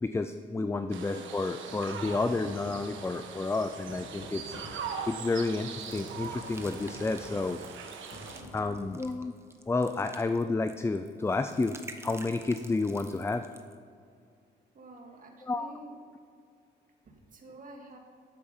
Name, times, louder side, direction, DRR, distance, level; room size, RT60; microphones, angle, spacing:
voice 1, 0.0-4.6 4.8-7.6 8.5-9.3 9.7-11.8 12.0-13.4 15.5-15.7, left 3 dB, 15° left, 9 dB, 0.4 m, -30 dB
sound 1, 0.9-8.4, right 6 dB, 75° right, 1.2 m, -41 dB
Hammer, 1.7-3.1 3.5-4.9 5.5-7.6 8.1-9.1, left 1 dB, 55° left, 2.6 m, -47 dB
sound 2, 5.1-13.8, right 2 dB, 15° right, 1.0 m, -51 dB
voice 2, 8.3-8.7 14.7-16.0 17.0-18.0, right 1 dB, 45° right, 2 dB, 2.1 m, -49 dB
12.5 x 7.0 x 5.5 m, 2.3 s
cardioid pair, 90°, 20 cm